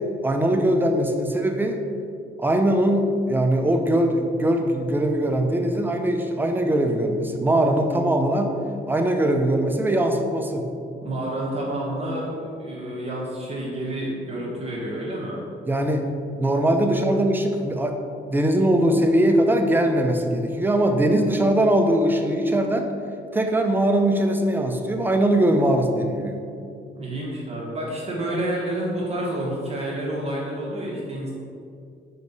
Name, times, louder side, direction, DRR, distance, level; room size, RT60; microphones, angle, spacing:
voice 1, 0.2-1.8 2.4-8.6 8.9-10.7 15.7-16.1 16.4-18.0 18.3-22.9 23.3-26.4, right 1 dB, 10° right, 4 dB, 0.6 m, -21 dB
voice 2, 11.0-15.4 26.9-31.3, right 1 dB, 30° right, -6 dB, 1.2 m, -29 dB
5.2 x 4.7 x 4.0 m, 2.5 s
cardioid pair, 90°, 20 cm